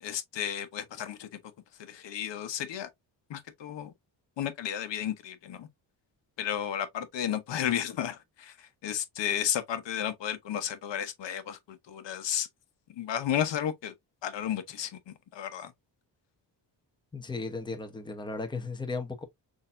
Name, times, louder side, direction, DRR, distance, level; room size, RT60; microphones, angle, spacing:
voice 1, 0.0-1.3 1.8-2.9 3.3-3.9 4.4-5.7 6.4-8.5 8.8-12.5 13.0-13.9 14.2-14.9 15.3-15.7, left 10 dB, 75° left, 1.0 m, -33 dB
voice 2, 17.1-19.2, left 3 dB, 10° left, 0.9 m, -35 dB
6.4 x 2.8 x 2.6 m
wide cardioid pair, 140°, 44 cm